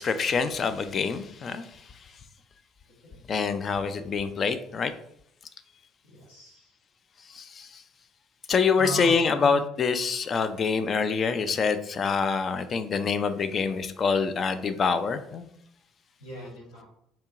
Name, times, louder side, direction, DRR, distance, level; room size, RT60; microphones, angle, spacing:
voice 1, 0.0-1.6 3.3-4.9 7.3-7.8 8.5-15.5, left 5 dB, 40° left, 11 dB, 0.4 m, -26 dB
voice 2, 6.1-6.7 8.8-9.5 16.2-16.9, equal, 75° left, -3 dB, 1.1 m, -38 dB
4.4 x 2.9 x 2.5 m, 0.73 s
figure-of-eight pair, 55°, 0 cm